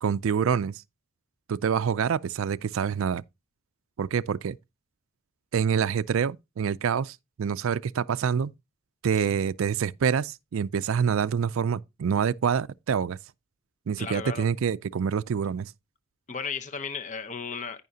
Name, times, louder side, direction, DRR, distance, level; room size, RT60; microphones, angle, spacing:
voice 1, 0.0-0.8 1.5-3.2 4.0-4.6 5.5-8.5 9.0-13.2 13.9-15.7, right 7 dB, 60° right, 0.4 m, -26 dB
voice 2, 14.0-14.5 16.3-17.8, left 5 dB, 35° left, 0.7 m, -35 dB
14.0 x 5.6 x 2.7 m
head